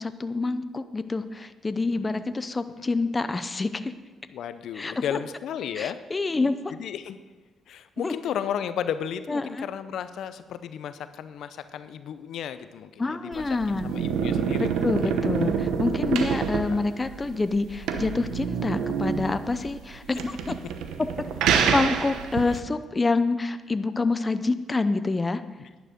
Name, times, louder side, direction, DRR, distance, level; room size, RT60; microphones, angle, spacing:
voice 1, 0.0-3.9 4.7-4.9 5.8-6.7 8.0-8.1 9.3-9.7 13.0-13.9 14.6-20.5 21.2-21.3 21.7-25.4, left 3 dB, 25° left, 11 dB, 0.6 m, -27 dB
voice 2, 4.3-6.0 6.7-7.2 7.7-14.7 15.0-15.1 16.7-16.8 22.5-22.6, left 9 dB, 75° left, 12 dB, 0.6 m, -34 dB
sound 1, 13.3-22.6, right 7 dB, 90° right, 1.0 m, -27 dB
11.0 x 10.5 x 5.2 m, 1.3 s
cardioid pair, 90°, 0 cm